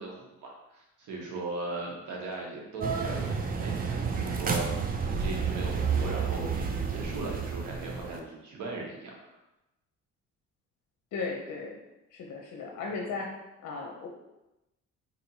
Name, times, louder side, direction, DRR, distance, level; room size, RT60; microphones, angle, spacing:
voice 1, 0.0-9.4, right 3 dB, 80° right, -1 dB, 1.1 m, -39 dB
sound 1, 2.8-8.2, right 5 dB, 30° right, 0.4 m, -30 dB
voice 2, 11.1-11.7 12.1-13.3 13.6-14.1, left 4 dB, 70° left, -1 dB, 0.6 m, -36 dB
4.1 x 2.9 x 2.7 m, 0.95 s
cardioid pair, 90°, 30 cm